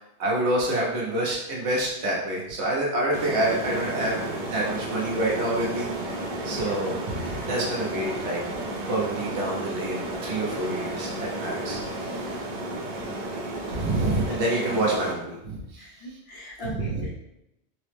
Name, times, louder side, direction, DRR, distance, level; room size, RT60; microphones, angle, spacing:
voice 1, 0.2-4.2 4.5-5.9 6.4-8.4 8.9-11.1 11.4-11.8 13.7-15.9 16.6-17.1, right 1 dB, 80° right, -3 dB, 1.1 m, -27 dB
sound 1, 3.1-15.1, right 1 dB, 55° right, 0.6 m, -32 dB
voice 2, 6.4-6.9 15.8-17.1, equal, 65° left, -3 dB, 1.0 m, -39 dB
3.4 x 2.0 x 3.3 m, 0.87 s
omnidirectional pair, 1.2 m